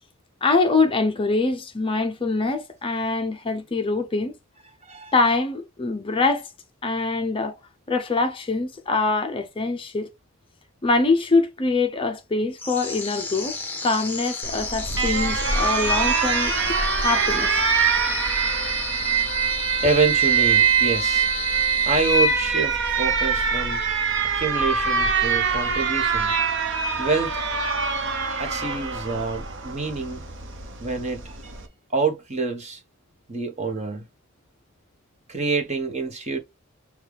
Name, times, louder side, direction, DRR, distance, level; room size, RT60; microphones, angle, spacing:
voice 1, 0.4-4.4 5.1-6.5 6.8-7.5 7.9-10.1 10.8-13.6 13.8-16.5 17.0-17.6, left 3 dB, 25° left, 0.5 m, -24 dB
voice 2, 4.8-5.2 19.8-21.3 21.9-23.8 24.3-27.3 28.4-30.2 30.8-31.5 31.9-32.8 33.3-34.0 35.3-36.4, right 4 dB, 30° right, 0.9 m, -27 dB
sound 1, 12.6-22.8, left 4 dB, 10° left, 1.0 m, -32 dB
Alarm, 14.4-31.7, right 5 dB, 55° right, 0.9 m, -24 dB
6.5 x 2.3 x 3.3 m
head